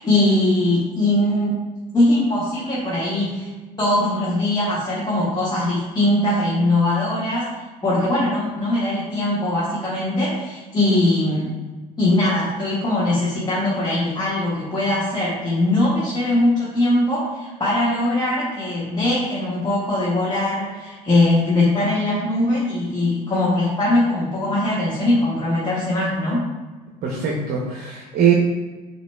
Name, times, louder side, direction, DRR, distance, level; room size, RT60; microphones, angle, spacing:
voice 1, 0.0-1.5 1.9-3.5 3.8-7.5 7.8-11.5 12.0-26.4, left 1 dB, 20° left, -7 dB, 1.3 m, -21 dB
voice 2, 27.0-28.3, right 8 dB, 50° right, -2 dB, 0.8 m, -21 dB
5.9 x 2.9 x 2.2 m, 1.3 s
hypercardioid pair, 75°, 20 cm